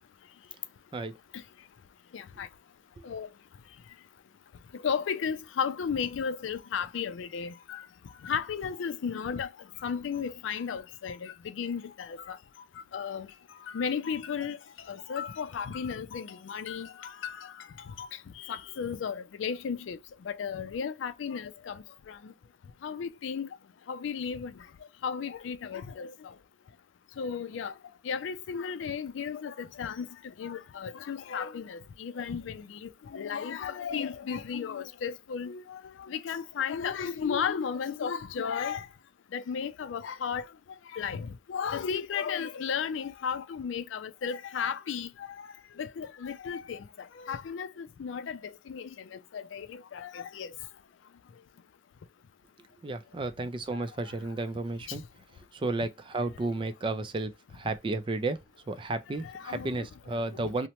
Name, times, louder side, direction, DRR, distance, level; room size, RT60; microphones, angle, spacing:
voice 1, 2.1-2.5 3.0-3.3 4.8-7.8 8.2-9.5 9.8-12.4 12.9-13.3 13.7-14.6 14.9-17.5 18.0-18.1 18.4-20.0 20.3-22.3 22.8-23.5 23.9-24.5 25.0-26.1 27.2-27.7 28.0-30.1 30.4-38.9 39.3-40.5 40.9-45.5 45.8-46.8 47.2-48.4 48.7-50.5 59.3-59.9 60.4-60.5, left 6 dB, 90° left, 0.4 m, -34 dB
voice 2, 52.8-55.0 55.5-58.4 58.7-60.7, right 2 dB, 25° right, 0.3 m, -33 dB
3.0 x 2.1 x 2.8 m
head